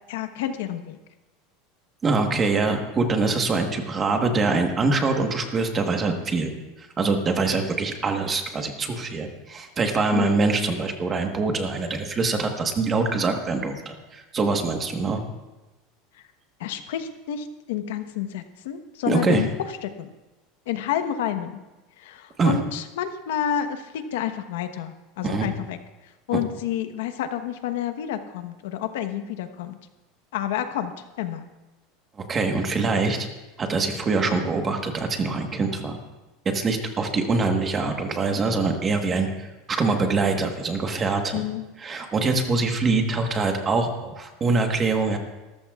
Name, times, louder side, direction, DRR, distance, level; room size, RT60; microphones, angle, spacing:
voice 1, 0.1-1.0 10.1-10.4 16.1-16.2 16.6-20.1 20.7-21.6 22.0-25.8 26.0-29.8 30.3-31.5 41.3-41.6, left 10 dB, 85° left, 9 dB, 1.1 m, -29 dB
voice 2, 2.0-6.5 6.8-15.2 19.1-19.4 22.4-22.6 25.2-25.5 32.3-33.2 33.6-36.0 36.5-41.4 41.8-45.2, right 3 dB, 20° right, 4 dB, 1.3 m, -24 dB
24.0 x 14.0 x 2.4 m, 1.1 s
supercardioid pair, 165°, 0 cm